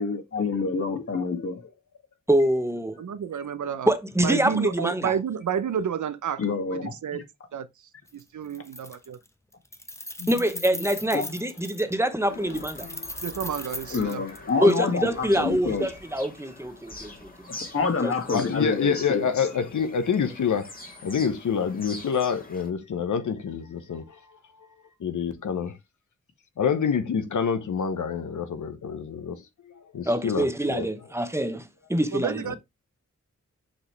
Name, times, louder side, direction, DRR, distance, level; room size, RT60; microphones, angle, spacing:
voice 1, 0.0-1.6 6.4-7.2 11.1-11.2 13.9-15.8 17.5-19.5, left 4 dB, 50° left, 1.9 m, -27 dB
voice 2, 2.3-3.0 3.9-5.1 10.3-12.9 14.6-17.3 18.0-18.1 30.0-32.6, right 1 dB, 10° right, 1.0 m, -25 dB
voice 3, 3.0-3.9 4.2-6.4 6.7-7.2 7.5-7.7 8.1-9.2 13.2-14.2 32.1-32.5, right 8 dB, 80° right, 0.7 m, -30 dB
Keys jangling, 8.1-8.2 8.5-9.3 9.5-11.9 12.5-14.8, left 1 dB, 10° left, 0.9 m, -38 dB
Bird vocalization bird call bird song, 12.2-22.7, left 2 dB, 30° left, 1.8 m, -45 dB
voice 4, 18.3-20.7 21.0-24.0 25.0-25.8 26.6-30.9 32.5-32.6, left 6 dB, 85° left, 1.1 m, -27 dB
7.0 x 5.2 x 3.3 m
wide cardioid pair, 95°, 29 cm